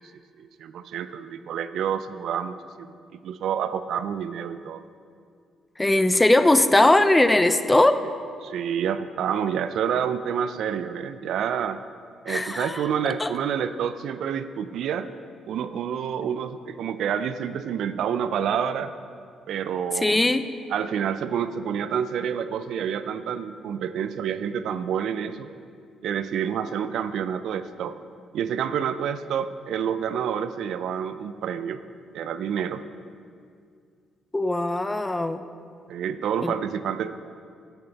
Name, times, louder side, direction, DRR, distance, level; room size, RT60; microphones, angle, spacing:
voice 1, 0.4-2.9 3.2-4.8 8.4-11.8 12.3-15.1 15.5-18.9 19.5-20.3 20.7-25.5 26.0-28.0 28.3-31.8 32.1-32.8 35.9-37.1, right 8 dB, 75° right, 12 dB, 0.4 m, -28 dB
voice 2, 5.8-8.0 12.3-12.8 13.2-13.3 20.0-20.5 34.3-35.4 36.4-36.5, left 1 dB, 15° left, 11 dB, 0.5 m, -20 dB
10.5 x 9.0 x 4.0 m, 2.3 s
cardioid pair, 90°, 0 cm